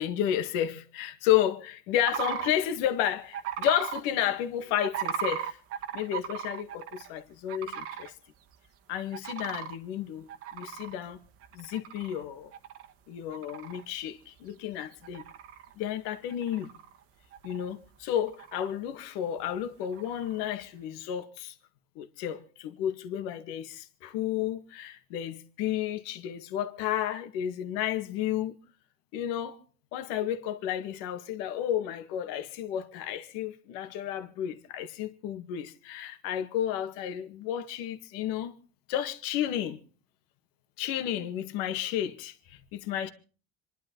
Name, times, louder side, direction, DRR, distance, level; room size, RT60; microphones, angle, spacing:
voice 1, 0.0-5.6 5.9-8.1 8.9-11.2 11.5-12.5 13.1-15.2 15.8-16.7 17.4-21.5 22.0-28.5 29.1-29.6 29.9-38.5 38.9-39.8 40.8-43.1, left 11 dB, 75° left, 1.9 m, -32 dB
sound 1, 2.0-2.5 3.3-4.0 4.8-7.1 7.5-8.1 8.5-8.6 9.1-9.7 10.3-12.2 12.5-12.9 13.3-13.8 14.4-14.5 14.9-15.7 16.3-17.0 17.3-17.9 18.2-18.7 19.8-20.4, right 9 dB, 50° right, 1.5 m, -37 dB
27.5 x 11.5 x 4.0 m
supercardioid pair, 120°, 29 cm